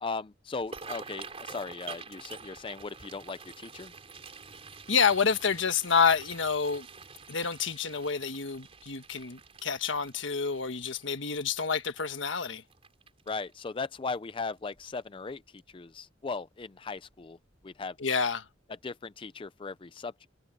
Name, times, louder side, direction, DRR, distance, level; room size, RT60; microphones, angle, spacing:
voice 1, 0.0-3.9 13.3-17.4 17.6-18.0 18.8-20.3, left 4 dB, 25° left, 0.4 m, -38 dB
sound 1, 0.6-13.7 14.2-14.4 14.8-15.2 15.6-15.7 17.0-17.2 17.5-17.6 18.1-18.2, right 5 dB, 30° right, 4.0 m, -47 dB
voice 2, 4.9-6.9 7.3-12.6 18.0-18.4, left 6 dB, 75° left, 1.4 m, -28 dB
head